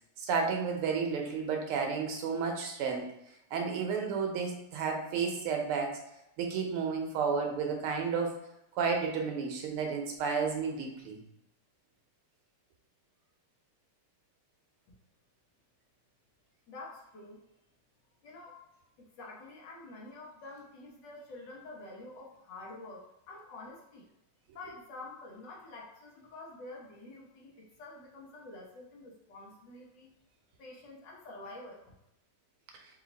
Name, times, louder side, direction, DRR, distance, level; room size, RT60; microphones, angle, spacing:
voice 1, 0.2-3.1 3.5-6.0 6.4-8.4 8.8-11.2, right 5 dB, 90° right, 2 dB, 1.7 m, -32 dB
voice 2, 16.7-17.4 18.2-18.6 19.0-24.1 24.5-30.1 30.6-31.8, left 2 dB, 65° left, -2 dB, 1.4 m, -48 dB
4.0 x 2.8 x 3.9 m, 0.87 s
omnidirectional pair, 2.3 m